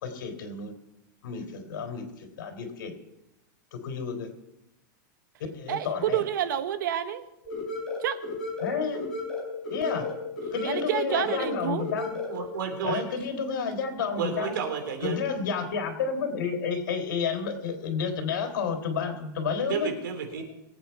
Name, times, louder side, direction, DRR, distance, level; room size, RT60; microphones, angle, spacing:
voice 1, 0.0-0.7 1.2-2.9 3.7-4.3 5.5-6.2 8.6-9.0 9.7-10.1 10.5-12.2 12.8-14.5 15.0-19.9, left 6 dB, 85° left, 5 dB, 3.6 m, -31 dB
voice 2, 5.7-7.2 8.0-8.2 10.6-11.9, right 10 dB, 70° right, 11 dB, 1.2 m, -29 dB
sound 1, 7.4-12.4, left 3 dB, 5° left, 4.1 m, -34 dB
voice 3, 12.3-13.0 14.2-15.2 19.6-20.4, right 6 dB, 90° right, 4 dB, 3.8 m, -31 dB
23.0 x 8.8 x 4.7 m, 0.91 s
supercardioid pair, 170°, 11 cm